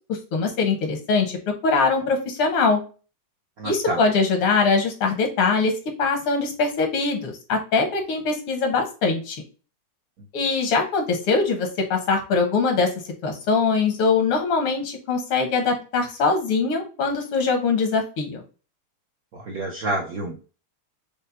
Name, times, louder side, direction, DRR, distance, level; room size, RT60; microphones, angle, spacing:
voice 1, 0.1-2.8 3.6-5.7 6.0-9.4 10.3-12.9 13.2-18.4, left 4 dB, 85° left, 4 dB, 2.1 m, -22 dB
voice 2, 3.6-4.0 19.3-20.4, right 2 dB, 75° right, 1 dB, 0.8 m, -29 dB
5.3 x 2.1 x 4.1 m, 0.35 s
omnidirectional pair, 2.4 m